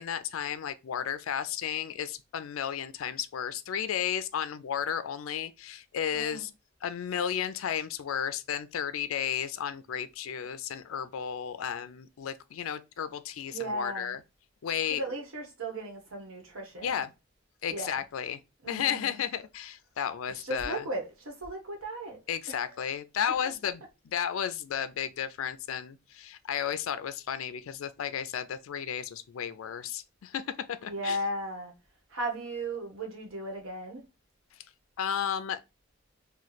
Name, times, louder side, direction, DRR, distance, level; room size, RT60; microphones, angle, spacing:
voice 1, 0.0-6.5 6.8-14.2 14.6-15.0 16.8-17.1 17.6-18.4 18.7-20.8 22.3-23.8 24.1-30.4 30.8-31.2 35.0-35.6, left 8 dB, 80° left, 0.4 m, -33 dB
voice 2, 6.1-6.5 13.5-14.2 14.9-17.0 17.7-18.0 18.6-19.2 20.3-22.2 22.5-22.9 30.9-31.7 32.1-34.0, right 1 dB, 90° right, 1.2 m, -36 dB
3.0 x 2.3 x 3.9 m
head